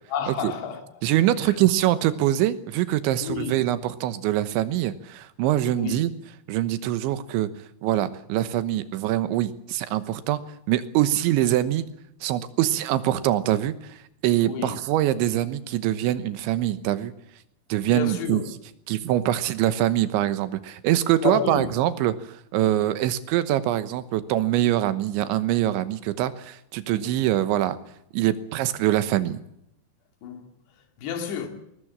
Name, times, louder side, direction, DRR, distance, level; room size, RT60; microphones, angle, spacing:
voice 1, 0.1-0.8 1.4-1.6 3.2-3.6 5.7-6.0 14.4-14.8 17.9-18.5 21.2-21.7 26.9-27.1 30.2-30.5 31.0-31.5, left 8 dB, 70° left, 4.5 m, -30 dB
voice 2, 1.0-6.1 6.5-7.5 7.8-10.4 10.7-11.8 12.2-14.0 14.2-17.1 17.7-18.4 18.9-27.8 28.1-29.4, right 13 dB, 80° right, 3.4 m, -24 dB
20.5 x 20.0 x 7.5 m
omnidirectional pair, 5.3 m